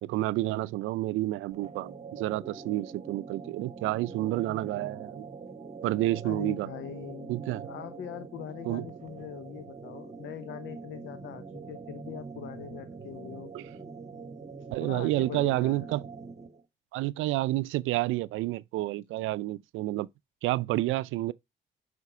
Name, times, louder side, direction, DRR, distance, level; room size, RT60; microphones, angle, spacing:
voice 1, 0.0-5.3 5.8-6.7 7.3-7.7 8.7-8.8 13.5-13.6 14.7-16.0 16.9-20.1 20.4-21.3, right 17 dB, 90° right, 0.4 m, -29 dB
sound 1, 1.5-16.6, right 5 dB, 35° right, 1.4 m, -44 dB
voice 2, 6.2-7.4 7.7-13.5 14.8-15.9, left 10 dB, 75° left, 0.8 m, -42 dB
5.9 x 5.0 x 6.7 m
cardioid pair, 90°, 20 cm